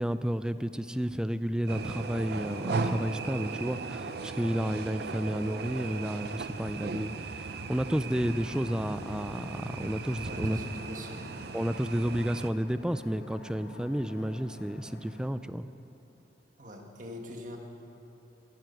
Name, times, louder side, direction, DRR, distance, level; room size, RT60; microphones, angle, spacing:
voice 1, 0.0-10.6 11.5-15.7, equal, 5° right, 12 dB, 0.3 m, -31 dB
sound 1, 1.7-12.5, right 3 dB, 65° right, 0.6 m, -37 dB
sound 2, 8.1-15.3, left 1 dB, 75° left, 1.2 m, -49 dB
voice 2, 10.3-11.3 16.6-17.6, left 1 dB, 45° right, 2 dB, 1.5 m, -43 dB
13.5 x 11.0 x 6.4 m, 2.9 s
head